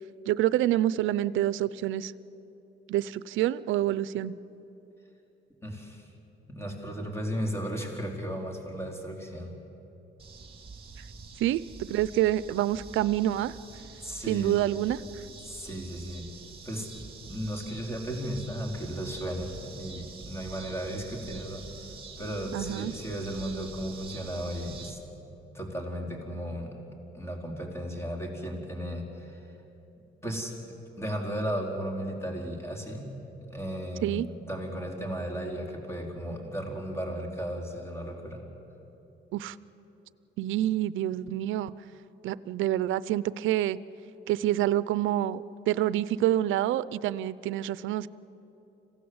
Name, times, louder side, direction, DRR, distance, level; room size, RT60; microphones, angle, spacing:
voice 1, 0.3-2.1 2.9-4.3 11.4-11.6 11.9-13.5 14.3-15.0 22.5-22.9 34.0-34.3 39.3-39.5 40.4-41.7 42.2-43.8 44.3-48.1, right 13 dB, 85° right, 18 dB, 0.6 m, -27 dB
voice 2, 5.6-6.1 6.5-9.5 14.0-14.6 15.4-16.3 16.6-21.6 22.2-25.0 25.5-26.7 27.1-29.5 30.2-30.5 31.0-33.1 33.5-34.2 34.5-38.4, equal, 15° left, 1 dB, 4.2 m, -35 dB
sound 1, 10.2-24.9, right 4 dB, 25° right, 3.4 m, -46 dB
26.5 x 16.5 x 8.0 m, 3.0 s
cardioid pair, 90°, 20 cm